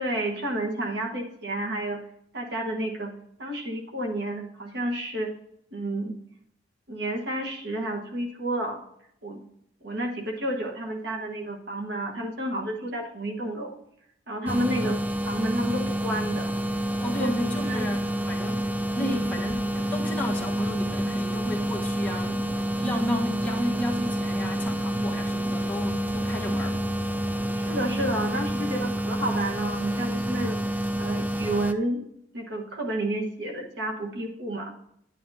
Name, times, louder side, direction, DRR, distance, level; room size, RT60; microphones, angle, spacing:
voice 1, 0.0-2.0 2.3-3.1 3.4-5.3 5.7-6.1 6.9-8.8 9.2-9.4 9.8-13.8 14.3-15.0 15.3-16.5 17.1-17.3 17.7-17.9 19.1-19.2 27.5-32.0 32.3-34.7, right 1 dB, 65° right, 1 dB, 1.4 m, -30 dB
sound 1, 14.5-31.7, right 1 dB, 10° right, 0.4 m, -28 dB
voice 2, 17.0-26.8, left 1 dB, 10° left, -2 dB, 1.3 m, -32 dB
10.5 x 9.4 x 2.8 m, 0.74 s
head